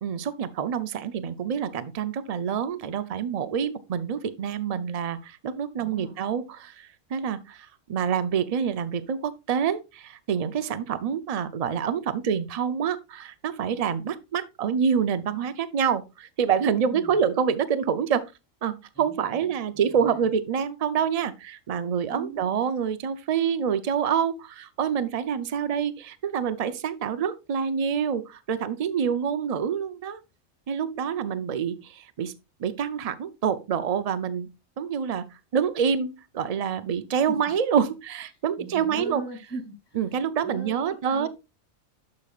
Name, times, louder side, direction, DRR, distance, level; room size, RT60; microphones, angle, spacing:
voice 1, 0.0-18.2 18.6-30.2 30.7-32.3 32.6-34.5 34.8-35.3 35.5-39.2 40.0-41.3, right 7 dB, 50° right, 0.4 m, -27 dB
voice 2, 5.8-6.2 16.7-17.3 18.9-20.3 22.1-22.5 37.1-37.5 38.3-40.0 40.4-41.3, right 1 dB, 15° left, 2.4 m, -40 dB
11.5 x 5.3 x 2.4 m
omnidirectional pair, 1.4 m